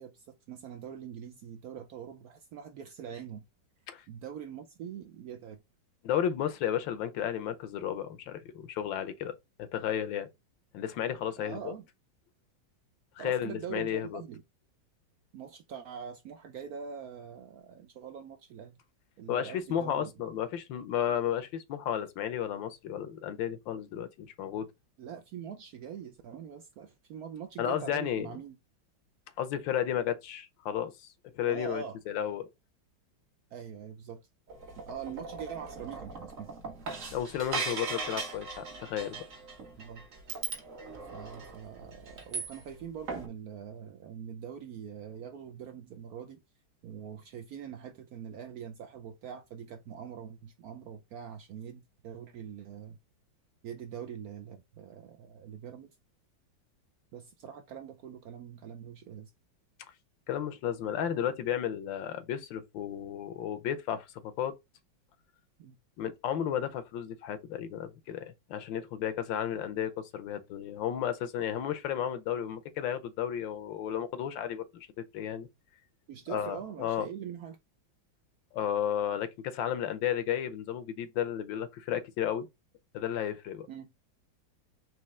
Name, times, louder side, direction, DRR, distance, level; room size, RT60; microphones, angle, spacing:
voice 1, 0.0-3.5 4.1-5.6 11.4-11.9 13.2-14.4 15.3-18.8 19.2-20.1 25.0-28.6 31.5-32.0 33.5-34.2 34.8-36.7 39.8-40.0 41.1-46.4 46.8-53.0 53.6-55.9 57.1-59.3 65.6-65.8 76.1-77.6 83.7-83.9, right 8 dB, 75° right, 0.8 m, -43 dB
voice 2, 6.0-10.3 10.7-11.7 13.2-14.2 19.3-24.7 27.6-28.3 29.4-32.5 37.1-39.2 60.3-64.5 66.0-75.5 76.3-77.1 78.5-82.5 82.9-83.7, left 9 dB, 80° left, 1.4 m, -33 dB
sound 1, 34.5-42.8 43.1-43.3, right 4 dB, 50° right, 1.2 m, -39 dB
4.3 x 3.1 x 3.5 m
omnidirectional pair, 2.1 m